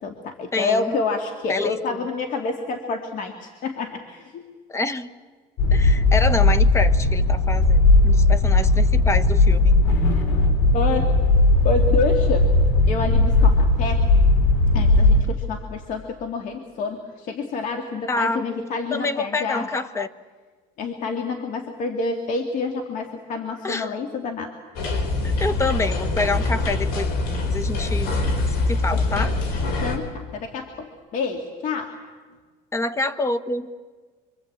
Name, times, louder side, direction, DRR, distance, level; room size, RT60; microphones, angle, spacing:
voice 1, 0.0-4.4 8.5-8.7 10.7-11.1 11.6-12.5 12.9-14.0 14.7-19.7 20.8-24.5 28.9-29.0 29.8-32.0, left 4 dB, 50° left, 5 dB, 2.3 m, -28 dB
voice 2, 0.5-0.9 1.5-1.8 4.7-5.1 5.7-9.8 18.1-18.4 18.9-20.1 23.6-23.9 25.4-27.1 27.5-28.1 28.7-29.3 32.7-33.7, left 3 dB, 15° left, 13 dB, 1.2 m, -26 dB
sound 1, 5.6-15.2, left 2 dB, 90° left, 3.8 m, -17 dB
sound 2, 24.8-30.0, left 2 dB, 70° left, 4.5 m, -24 dB
26.0 x 25.0 x 8.7 m, 1.5 s
cardioid pair, 140°, 17 cm